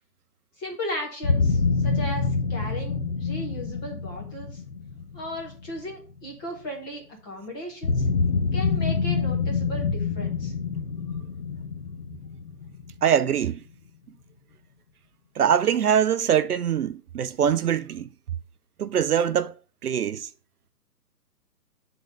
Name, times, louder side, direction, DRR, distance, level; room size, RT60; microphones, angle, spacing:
voice 1, 0.6-4.6 5.1-8.1 8.5-10.5, equal, 15° left, 1.0 m, -36 dB
sound 1, 1.2-6.2 7.8-13.5, left 4 dB, 45° left, 0.4 m, -26 dB
voice 2, 13.0-13.6 15.4-18.1 18.8-19.5 19.8-20.3, right 8 dB, 65° right, 0.6 m, -23 dB
7.2 x 3.9 x 5.1 m
hypercardioid pair, 150°, 49 cm